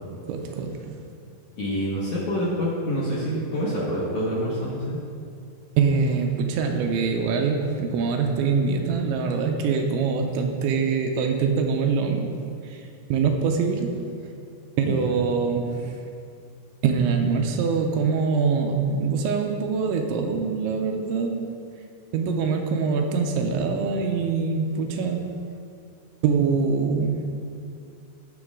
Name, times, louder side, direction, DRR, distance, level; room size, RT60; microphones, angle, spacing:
voice 1, 0.1-1.1 5.8-12.4 12.6-12.8 13.1-14.1 14.8-16.0 16.8-21.5 22.1-25.3 26.2-27.3, right 5 dB, 85° right, 3 dB, 3.0 m, -24 dB
voice 2, 1.6-5.0 14.8-15.0, equal, 60° left, -7 dB, 2.1 m, -27 dB
18.0 x 6.1 x 3.7 m, 2.4 s
omnidirectional pair, 5.5 m